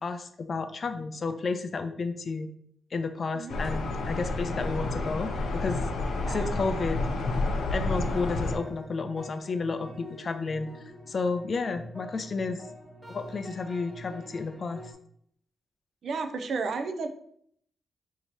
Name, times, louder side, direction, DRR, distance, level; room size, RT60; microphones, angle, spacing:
voice 1, 0.0-2.5 2.9-5.8 6.3-7.0 7.7-12.6 13.1-14.8, left 4 dB, 45° left, 9 dB, 0.4 m, -32 dB
sound 1, 3.5-8.6, left 2 dB, 90° left, 0.6 m, -30 dB
voice 2, 6.3-6.6 16.0-17.1, right 4 dB, 65° right, 7 dB, 0.4 m, -32 dB
sound 2, 7.4-14.9, equal, 5° left, 0.8 m, -46 dB
2.8 x 2.7 x 4.4 m, 0.67 s
cardioid pair, 105°, 0 cm